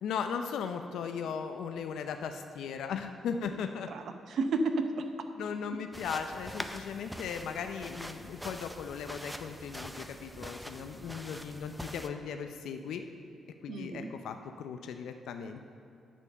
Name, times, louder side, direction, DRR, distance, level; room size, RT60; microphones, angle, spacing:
voice 1, 0.0-3.9 5.4-13.1 13.6-15.6, left 6 dB, 85° left, 7 dB, 0.5 m, -37 dB
voice 2, 3.9-5.3 13.7-14.1, right 3 dB, 65° right, 7 dB, 0.7 m, -32 dB
sound 1, 5.9-12.1, equal, ahead, 0.5 m, -44 dB
10.0 x 4.4 x 6.7 m, 2.7 s
cardioid pair, 120°, 0 cm